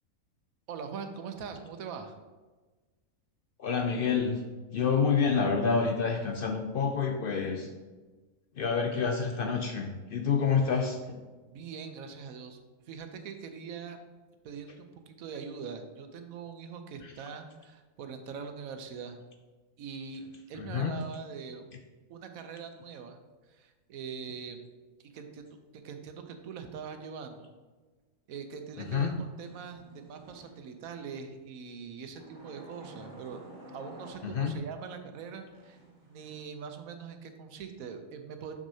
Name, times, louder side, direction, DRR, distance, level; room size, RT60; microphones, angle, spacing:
voice 1, 0.7-2.2 11.5-12.6 12.9-14.0 14.4-19.2 19.8-21.7 22.1-23.2 23.5-24.7 25.0-27.5 28.3-33.4 33.7-35.8 36.1-38.6, right 6 dB, 80° right, 7 dB, 1.1 m, -42 dB
voice 2, 3.6-4.4 4.7-7.7 8.5-11.2 17.0-17.2 20.5-20.9 28.8-29.1 34.2-34.5, left 5 dB, 70° left, 3 dB, 0.5 m, -28 dB
sound 1, 28.8-30.9 32.2-34.8 35.3-36.4, right 1 dB, 45° right, 1.1 m, -51 dB
6.5 x 6.1 x 2.7 m, 1.3 s
omnidirectional pair, 1.5 m